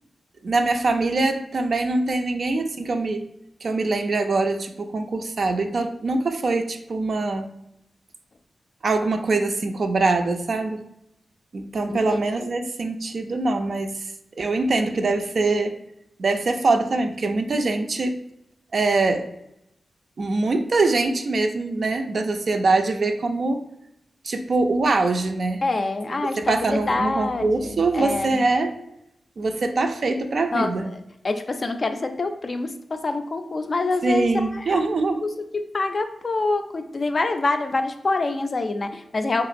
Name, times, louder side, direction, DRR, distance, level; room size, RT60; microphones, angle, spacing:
voice 1, 0.4-3.3 3.6-7.5 8.8-10.8 11.5-14.1 14.4-15.7 16.2-18.2 18.7-19.3 20.2-23.6 24.2-25.6 26.4-28.7 29.4-30.9 34.0-35.2, right 3 dB, 65° right, 5 dB, 0.3 m, -23 dB
voice 2, 11.9-12.5 25.6-28.4 30.5-31.0 31.2-34.9 35.2-39.5, left 3 dB, 50° left, 7 dB, 0.3 m, -26 dB
2.9 x 2.5 x 2.5 m, 0.81 s
cardioid pair, 45°, 0 cm